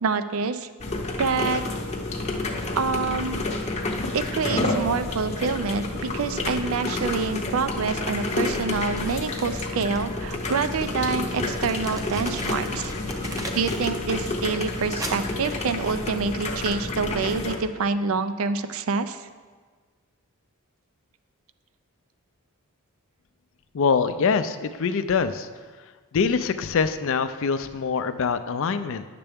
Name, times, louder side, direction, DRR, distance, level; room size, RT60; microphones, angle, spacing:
voice 1, 0.0-0.7 1.2-1.6 2.8-3.4 4.1-12.9 13.3-19.3, right 4 dB, 65° right, 11 dB, 0.4 m, -27 dB
sound 1, 0.8-17.6, left 2 dB, 30° left, 0.8 m, -29 dB
Crumpling crinkling, 8.5-13.9 14.2-16.2, right 1 dB, 15° right, 0.6 m, -39 dB
voice 2, 23.7-25.5 26.1-29.0, left 5 dB, 60° left, 11 dB, 0.4 m, -24 dB
9.9 x 6.7 x 3.5 m, 1.5 s
head